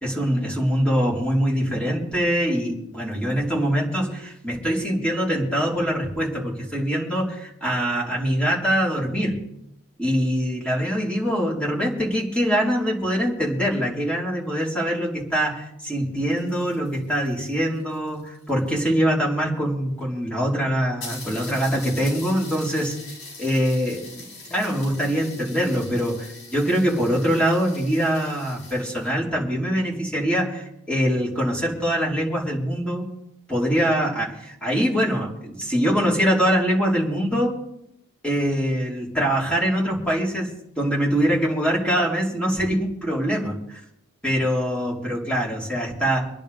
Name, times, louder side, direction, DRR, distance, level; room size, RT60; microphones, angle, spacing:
voice 1, 0.0-9.4 10.0-23.0 23.4-24.2 24.5-33.1 33.5-37.5 38.2-40.5 40.8-43.8 44.2-46.3, equal, 5° left, -4 dB, 4.3 m, -23 dB
sound 1, 16.0-18.8 19.7-19.8 20.0-20.1 20.4-20.5 21.0-29.2, left 3 dB, 70° left, 5.9 m, -42 dB
26.0 x 10.5 x 3.6 m, 0.78 s
head